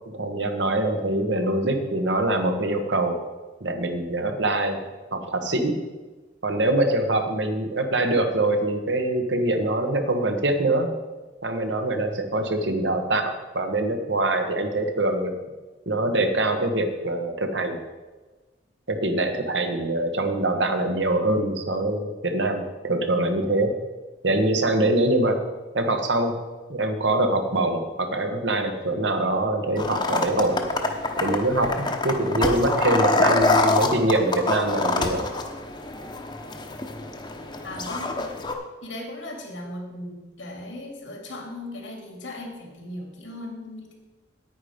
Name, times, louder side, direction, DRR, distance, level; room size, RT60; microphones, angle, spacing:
voice 1, 0.1-3.2 3.6-5.8 6.4-10.9 11.4-13.2 13.5-15.3 15.8-17.8 18.9-23.8 24.2-25.4 25.7-26.4 26.7-30.7 31.2-35.4, right 2 dB, 75° right, 6 dB, 1.4 m, -24 dB
sound 1, 29.8-38.5, left 2 dB, 25° left, 0.9 m, -26 dB
voice 2, 37.6-38.4 38.8-43.9, left 1 dB, 85° left, 1 dB, 2.8 m, -37 dB
9.6 x 9.5 x 5.1 m, 1.2 s
head